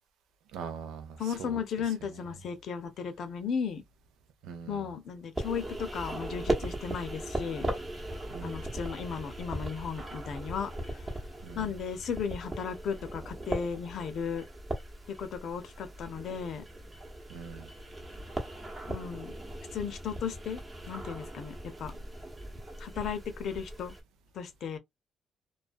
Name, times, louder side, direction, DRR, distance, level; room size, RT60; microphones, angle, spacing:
voice 1, 0.5-1.6 4.4-4.8 8.3-8.7 11.4-11.7 17.3-17.7, right 6 dB, 85° right, 0.5 m, -42 dB
voice 2, 1.2-3.8 4.7-7.7 8.4-11.0 11.6-14.4 15.1-16.6 18.9-19.3 19.7-20.6 20.9-22.0 22.8-23.9 24.3-24.8, left 6 dB, 65° left, 0.6 m, -35 dB
sound 1, 5.3-24.0, right 1 dB, 25° right, 0.9 m, -38 dB
2.3 x 2.1 x 2.5 m
cardioid pair, 90°, 0 cm